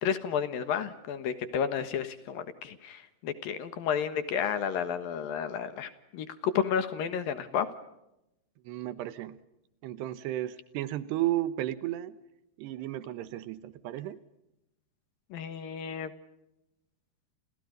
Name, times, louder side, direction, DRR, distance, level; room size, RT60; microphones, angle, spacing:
voice 1, 0.0-7.7 15.3-16.1, left 7 dB, 65° left, 11 dB, 2.9 m, -31 dB
voice 2, 8.7-9.4 9.8-12.2 12.6-14.2, right 14 dB, 80° right, 13 dB, 3.2 m, -33 dB
30.0 x 29.5 x 5.3 m, 0.88 s
omnidirectional pair, 4.8 m